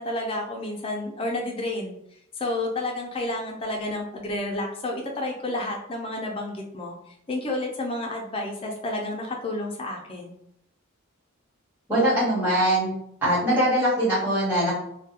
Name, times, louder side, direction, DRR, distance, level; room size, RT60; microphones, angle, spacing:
voice 1, 0.0-2.0 2.4-7.0 7.3-10.4, left 1 dB, 25° left, 0 dB, 0.4 m, -30 dB
voice 2, 11.9-12.9 13.2-14.7, right 1 dB, 10° right, -11 dB, 1.1 m, -22 dB
2.3 x 2.2 x 2.8 m, 0.73 s
head